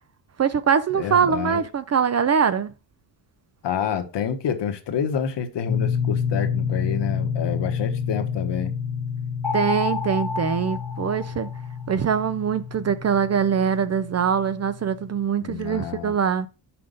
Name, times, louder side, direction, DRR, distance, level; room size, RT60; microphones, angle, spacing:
voice 1, 0.4-2.7 9.5-11.5 11.9-16.5, right 7 dB, 35° right, 0.4 m, -23 dB
voice 2, 0.9-1.6 3.6-8.7 15.4-16.1, left 8 dB, 65° left, 1.3 m, -28 dB
sound 1, 5.7-15.2, left 6 dB, 30° left, 0.5 m, -29 dB
sound 2, 9.4-11.9, left 4 dB, 5° left, 1.1 m, -30 dB
5.8 x 5.2 x 5.2 m
cardioid pair, 135°, 46 cm